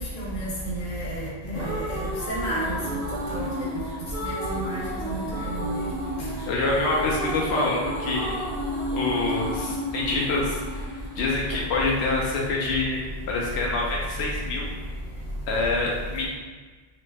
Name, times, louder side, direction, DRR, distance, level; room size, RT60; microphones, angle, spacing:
voice 1, 0.2-1.2 1.5-2.8 3.3-3.5 4.2-5.8, right 1 dB, 50° left, -6 dB, 1.0 m, -31 dB
sound 1, 1.2-12.2, equal, 60° right, 1.3 m, -32 dB
voice 2, 6.5-8.4 8.9-13.0 13.3-14.7 15.5-16.3, left 2 dB, 90° left, -2 dB, 0.8 m, -26 dB
3.0 x 2.1 x 3.3 m, 1.4 s
omnidirectional pair, 1.1 m